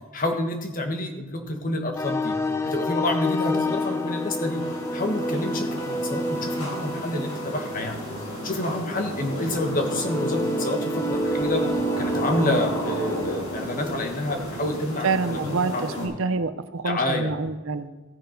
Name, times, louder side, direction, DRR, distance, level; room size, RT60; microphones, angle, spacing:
voice 1, 0.1-2.3 2.6-4.6 4.9-8.1 8.4-11.6 12.0-16.2 16.8-17.3, left 1 dB, 35° left, 3 dB, 1.4 m, -28 dB
sound 1, 2.0-13.4, left 1 dB, 10° left, 0.4 m, -29 dB
sound 2, 2.9-16.1, equal, 85° left, 4.7 m, -34 dB
voice 2, 15.0-17.9, right 4 dB, 60° right, 12 dB, 0.6 m, -27 dB
15.5 x 6.9 x 5.2 m, 1.3 s
head